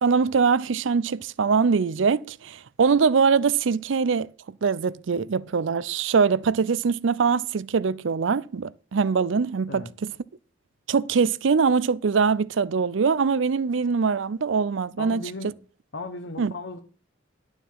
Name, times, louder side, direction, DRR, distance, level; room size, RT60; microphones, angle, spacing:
voice 1, 0.0-4.3 4.6-10.1 10.9-15.2 16.4-16.5, right 5 dB, 75° right, 0.5 m, -23 dB
voice 2, 15.0-15.5 15.9-16.8, left 2 dB, 70° left, 1.1 m, -36 dB
11.5 x 7.1 x 5.6 m
head